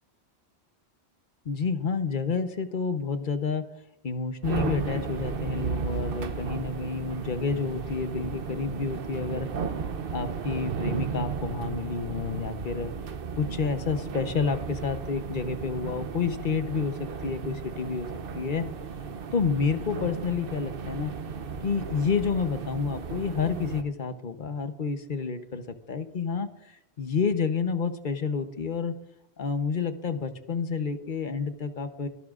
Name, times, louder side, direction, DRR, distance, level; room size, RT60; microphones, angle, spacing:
voice 1, 1.4-3.7 4.0-9.5 10.1-12.9 13.4-18.1 18.3-18.7 19.3-21.1 21.6-29.0 29.4-32.1, left 5 dB, 50° left, 9 dB, 1.0 m, -29 dB
sound 1, 4.4-23.8, right 5 dB, 60° right, 0.9 m, -34 dB
23.5 x 11.5 x 2.5 m, 0.83 s
omnidirectional pair, 1.1 m